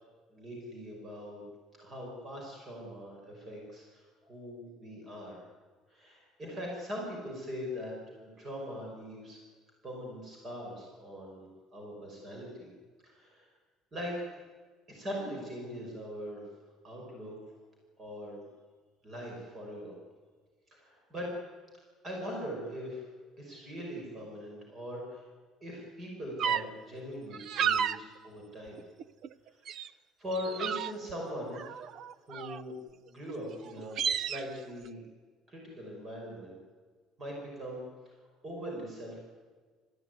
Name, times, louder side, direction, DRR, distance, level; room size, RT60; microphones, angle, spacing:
voice 1, 0.3-1.4 1.8-5.4 5.9-9.4 9.8-12.7 13.0-13.5 13.9-14.1 14.9-16.4 16.8-17.3 18.0-18.4 19.0-19.9 20.7-21.3 22.0-23.1 23.4-25.2 25.6-28.8 30.2-31.8 32.3-32.8 33.1-35.0 35.5-36.6 37.2-37.9 38.4-39.2, equal, 25° right, -1 dB, 5.7 m, -41 dB
sound 1, 26.4-26.6 27.3-28.0 28.5-29.3 29.7-29.9 30.3-31.1 31.5-32.7 33.3-33.4 33.7-34.4, right 8 dB, 45° right, 0.6 m, -32 dB
27.5 x 15.0 x 9.5 m, 1.5 s
cardioid pair, 170°, 0 cm